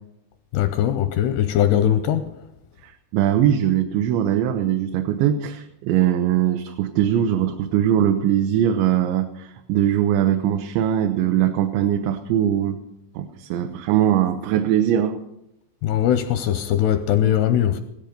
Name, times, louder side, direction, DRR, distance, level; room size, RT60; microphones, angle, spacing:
voice 1, 0.5-2.4 15.8-17.8, left 10 dB, 80° left, 2.5 m, -20 dB
voice 2, 2.8-12.8 13.2-15.2, right 10 dB, 80° right, 3.0 m, -21 dB
16.0 x 13.5 x 5.2 m
omnidirectional pair, 5.4 m